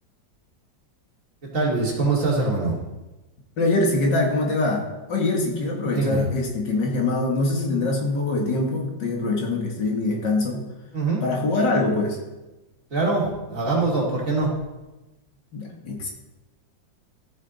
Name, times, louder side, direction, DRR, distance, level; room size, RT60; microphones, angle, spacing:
voice 1, 1.5-2.8 5.8-6.3 10.9-11.2 12.9-14.5, right 3 dB, 45° right, -4 dB, 2.9 m, -23 dB
voice 2, 3.6-10.6 11.2-12.2 15.5-16.1, left 2 dB, 65° left, 0 dB, 2.4 m, -24 dB
14.5 x 7.2 x 4.1 m, 1.1 s
omnidirectional pair, 2.1 m